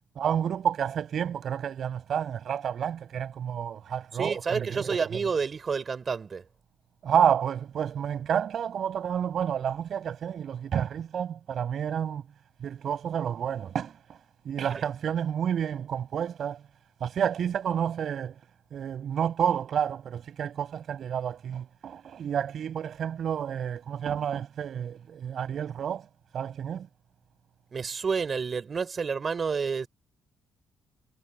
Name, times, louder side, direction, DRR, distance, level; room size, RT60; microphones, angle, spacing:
voice 1, 0.2-4.8 7.0-12.2 12.6-14.2 14.4-16.6 17.0-18.4 18.7-26.1 26.3-26.9, right 8 dB, 60° right, 7.1 m, -30 dB
voice 2, 4.1-6.5 14.6-14.9 27.7-29.9, right 5 dB, 40° right, 3.5 m, -29 dB
cardioid pair, 90°, 0 cm